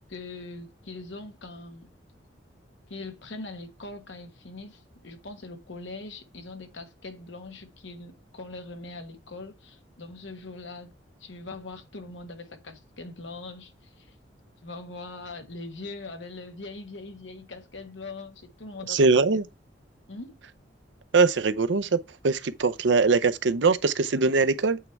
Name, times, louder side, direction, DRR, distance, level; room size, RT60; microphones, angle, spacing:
voice 1, 0.1-1.9 2.9-10.9 11.2-14.1 14.6-19.1 20.1-20.4, left 3 dB, 90° left, 1.4 m, -41 dB
voice 2, 18.9-19.5 21.1-22.0 22.2-24.8, right 4 dB, 75° right, 0.6 m, -22 dB
8.5 x 3.5 x 4.5 m
head